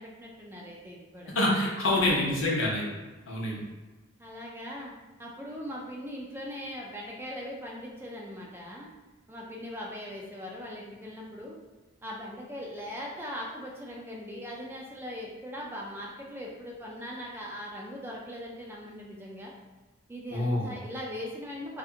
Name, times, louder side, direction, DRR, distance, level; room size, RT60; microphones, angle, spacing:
voice 1, 0.0-1.3 1.9-2.4 4.2-8.9 9.3-11.6 12.0-19.5 20.1-21.8, equal, 10° right, -3 dB, 0.3 m, -40 dB
voice 2, 1.3-2.8 3.3-3.6 20.3-20.7, left 1 dB, 70° left, -3 dB, 0.7 m, -26 dB
2.7 x 2.4 x 2.4 m, 1.3 s
head